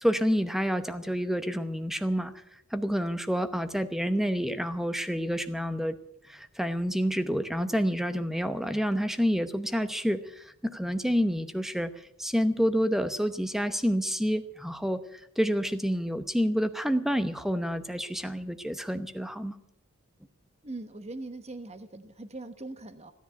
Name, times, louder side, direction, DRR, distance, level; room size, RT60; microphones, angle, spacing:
voice 1, 0.0-2.4 2.7-6.0 6.3-11.9 12.2-19.6, equal, ahead, 10 dB, 0.8 m, -28 dB
voice 2, 20.6-23.1, right 2 dB, 30° right, 10 dB, 1.0 m, -41 dB
16.0 x 10.5 x 8.1 m, 0.79 s
head